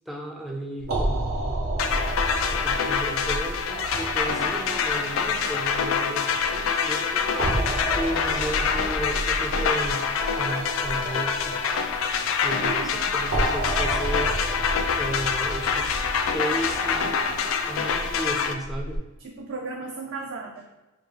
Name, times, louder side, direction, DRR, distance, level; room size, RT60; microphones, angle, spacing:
voice 1, 0.1-1.7 2.5-10.1 10.4-11.6 12.4-14.4 14.9-19.0, right 1 dB, ahead, 0 dB, 0.4 m, -34 dB
sound 1, 0.8-19.0, right 1 dB, 85° right, 0.9 m, -32 dB
sound 2, 1.8-18.5, left 6 dB, 70° left, 0.3 m, -26 dB
voice 2, 12.5-13.2 19.2-20.7, right 3 dB, 60° right, 0 dB, 0.4 m, -35 dB
5.9 x 2.0 x 3.3 m, 1.1 s
head